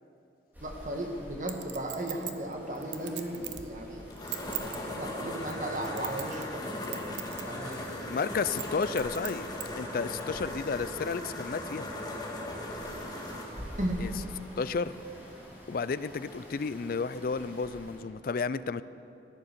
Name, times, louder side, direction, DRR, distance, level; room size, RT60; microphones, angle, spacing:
sound 1, 0.5-18.0, equal, 10° right, 3.5 m, -50 dB
voice 1, 0.6-4.1 4.6-6.8 7.4-8.1 13.8-14.3, right 1 dB, 45° right, 2 dB, 1.6 m, -36 dB
Chink clink, 1.5-3.7 4.1-4.8 5.4-6.5 6.8-7.4 7.7-7.8 8.5-9.7 10.2-10.3, right 13 dB, 75° right, 0.9 m, -38 dB
sound 2, 3.4-15.2, left 1 dB, 20° left, 1.7 m, -39 dB
voice 2, 8.1-9.4 9.8-11.9 14.0-14.1 14.6-14.9 15.7-18.8, left 5 dB, 50° left, 15 dB, 0.4 m, -32 dB
14.5 x 10.5 x 6.8 m, 2.8 s
head